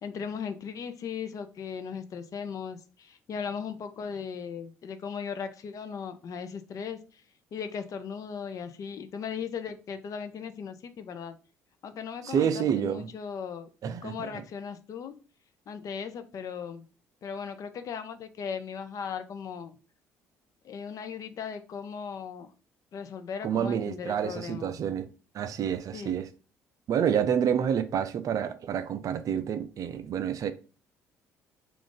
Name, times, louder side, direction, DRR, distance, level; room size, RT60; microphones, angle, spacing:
voice 1, 0.0-7.2 7.5-11.4 11.8-13.7 14.0-15.1 15.7-16.8 17.2-19.8 20.6-22.5 22.9-24.8 25.9-26.2, left 6 dB, 50° left, 0.5 m, -37 dB
voice 2, 12.2-13.1 13.8-14.3 23.4-25.1 25.3-26.3 26.9-30.5, right 8 dB, 50° right, 0.4 m, -28 dB
2.5 x 2.3 x 3.7 m
hypercardioid pair, 55°, 7 cm